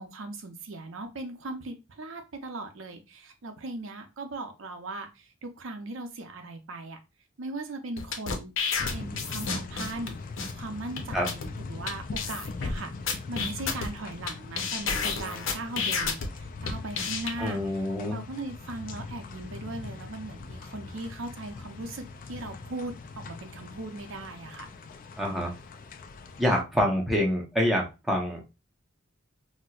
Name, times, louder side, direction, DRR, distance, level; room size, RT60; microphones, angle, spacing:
voice 1, 0.0-7.0 7.4-10.2 10.6-12.9 13.3-17.6 18.1-24.7, right 2 dB, 90° right, 5 dB, 0.6 m, -39 dB
sound 1, 8.0-10.1 10.4-10.5 11.0-11.1 11.3-11.5 11.9-12.0 12.2-12.7 13.1-14.3 14.6-16.3 16.7-17.3, left 5 dB, 80° left, 0.7 m, -30 dB
sound 2, 8.8-26.6, left 3 dB, 45° left, 0.3 m, -41 dB
voice 2, 17.4-18.2 25.2-25.5 26.4-28.4, equal, ahead, -2 dB, 0.8 m, -26 dB
4.3 x 2.1 x 2.4 m, 0.26 s
head